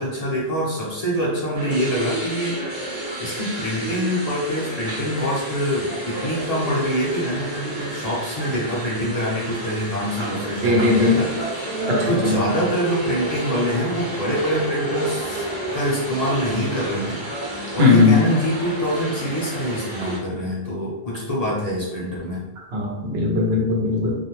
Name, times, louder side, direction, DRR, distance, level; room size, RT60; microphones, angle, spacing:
voice 1, 0.0-2.6 3.2-11.6 12.0-15.4 15.7-17.2 17.7-22.4, equal, 45° left, -6 dB, 0.7 m, -25 dB
sound 1, 1.5-20.2, right 1 dB, 30° right, 0.7 m, -31 dB
voice 2, 10.6-11.2 11.9-12.3 17.8-18.2 22.7-24.2, left 3 dB, 80° right, -1 dB, 0.9 m, -18 dB
Human voice, 11.6-13.4, right 1 dB, 5° left, 0.6 m, -33 dB
2.5 x 2.1 x 2.9 m, 1.0 s
omnidirectional pair, 1.0 m